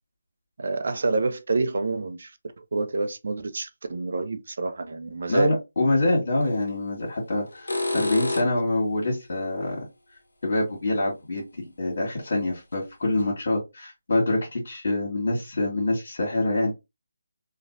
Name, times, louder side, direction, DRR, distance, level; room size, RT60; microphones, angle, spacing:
voice 1, 0.6-2.3 2.6-5.5, right 3 dB, 60° right, 0.5 m, -27 dB
voice 2, 5.3-9.8 10.4-16.7, left 2 dB, 60° left, 1.4 m, -25 dB
sound 1, 6.4-6.6 7.5-8.7 11.4-11.5 12.3-12.4 12.7-12.8 13.2-13.3, left 2 dB, 85° left, 0.7 m, -29 dB
3.2 x 2.4 x 2.6 m
figure-of-eight pair, 155°, 0 cm